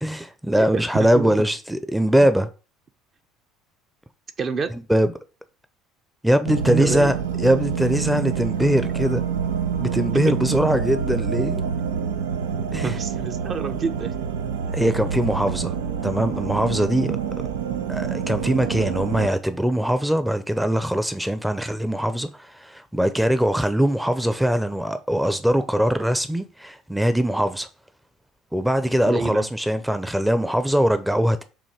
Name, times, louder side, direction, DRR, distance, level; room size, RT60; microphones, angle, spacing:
voice 1, 0.0-2.5 4.7-5.1 6.2-9.2 9.8-11.6 12.7-13.0 14.7-15.7 16.0-17.2 17.9-27.7 28.5-31.4, equal, 5° right, 0.7 m, -22 dB
voice 2, 0.6-1.3 4.4-4.7 6.7-7.1 10.3-10.4 12.5-14.1 29.0-29.5, right 5 dB, 40° right, 0.9 m, -27 dB
sound 1, 6.5-19.3, right 7 dB, 80° right, 0.6 m, -27 dB
6.9 x 2.9 x 5.0 m
hypercardioid pair, 65°, 0 cm